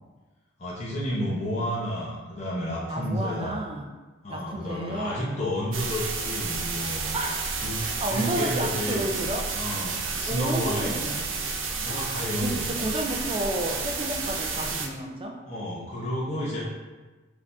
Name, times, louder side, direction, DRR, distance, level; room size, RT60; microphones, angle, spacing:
voice 1, 0.6-3.6 4.2-7.1 7.6-7.8 8.1-9.2 9.5-10.9 11.8-12.8 15.5-16.6, equal, 35° left, -7 dB, 0.8 m, -31 dB
voice 2, 2.9-3.9 4.3-5.4 7.1-7.5 7.8-9.5 10.3-11.3 11.9-15.4, right 1 dB, 25° right, 1 dB, 0.4 m, -31 dB
sound 1, 5.7-14.9, right 4 dB, 75° right, 0.6 m, -31 dB
4.9 x 2.7 x 3.5 m, 1.2 s
head